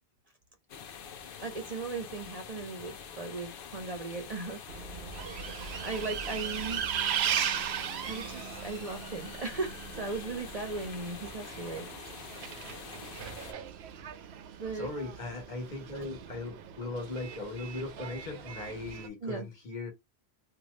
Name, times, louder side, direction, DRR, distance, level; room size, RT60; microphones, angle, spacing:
sound 1, 0.7-13.5, left 7 dB, 65° left, 0.8 m, -46 dB
voice 1, 1.4-4.8 5.8-6.9 8.1-11.9 12.7-12.8 14.6-14.9 19.2-19.5, right 3 dB, 45° right, 0.6 m, -37 dB
Bus, 4.7-19.1, right 8 dB, 90° right, 0.8 m, -38 dB
voice 2, 14.7-19.9, left 2 dB, 45° left, 1.3 m, -38 dB
2.7 x 2.3 x 3.0 m
omnidirectional pair, 1.1 m